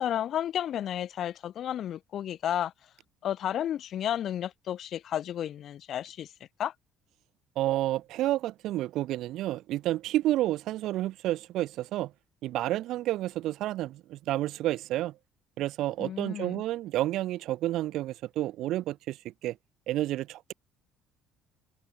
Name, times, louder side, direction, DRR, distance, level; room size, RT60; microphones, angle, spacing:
voice 1, 0.0-2.7 3.2-6.3 6.6-6.7 16.0-16.6, left 10 dB, 55° left, 1.3 m, -32 dB
voice 2, 7.6-12.1 12.4-15.1 15.6-19.6 19.9-20.5, right 15 dB, 70° right, 0.5 m, -30 dB
open air
supercardioid pair, 90°, 0 cm